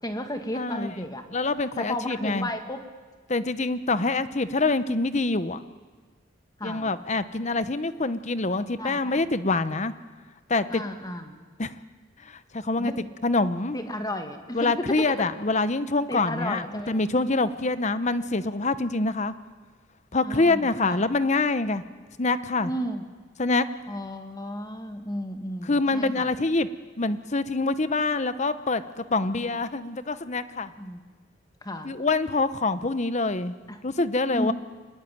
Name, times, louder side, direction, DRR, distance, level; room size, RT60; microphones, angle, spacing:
voice 1, 0.0-1.2 1.8-2.8 6.6-6.9 8.8-9.3 10.7-11.3 12.8-13.1 13.7-15.1 16.1-17.0 20.2-21.0 22.6-23.1 23.9-26.3 29.4-29.5 30.8-31.0 31.6-32.0 33.7-33.8 34.3-34.5, left 1 dB, 20° left, 6 dB, 1.9 m, -33 dB
voice 2, 0.5-0.9 1.3-2.5 3.3-5.6 6.6-9.9 10.5-10.8 11.6-11.7 12.3-12.9 13.2-13.8 14.5-19.3 20.1-21.8 22.2-22.7 23.4-23.7 25.6-26.7 27.0-30.7 31.8-33.5 33.8-34.5, left 3 dB, 35° left, 13 dB, 0.9 m, -25 dB
26.0 x 20.5 x 9.3 m, 1.5 s
head